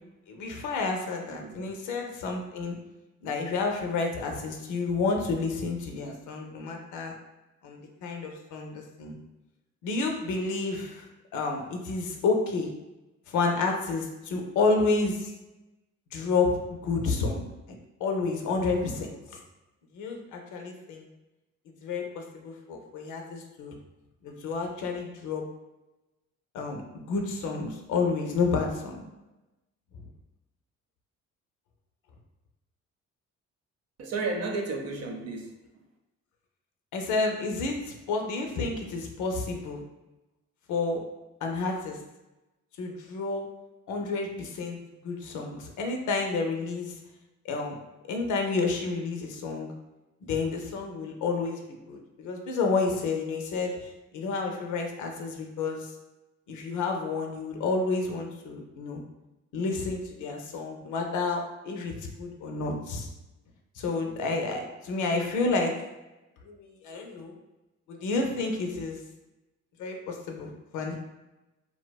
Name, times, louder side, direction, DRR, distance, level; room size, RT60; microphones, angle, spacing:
voice 1, 0.3-2.8 3.2-7.1 7.6-9.2 9.8-11.1 11.3-12.7 13.3-15.3 16.1-19.1 19.9-21.1 21.8-23.8 24.2-25.5 26.5-29.0 36.9-39.8 40.7-41.0 41.4-42.0 42.8-43.4 43.9-44.8 45.0-47.0 47.4-47.8 48.1-49.7 50.2-55.9 56.5-59.0 59.5-63.1 63.8-65.7 66.4-67.3 67.9-69.0 69.8-71.0, left 3 dB, 80° left, 2 dB, 0.5 m, -30 dB
voice 2, 1.3-1.7 34.0-35.5, right 3 dB, 55° right, 2 dB, 0.5 m, -33 dB
2.6 x 2.1 x 2.2 m, 1.0 s
cardioid pair, 90°, 30 cm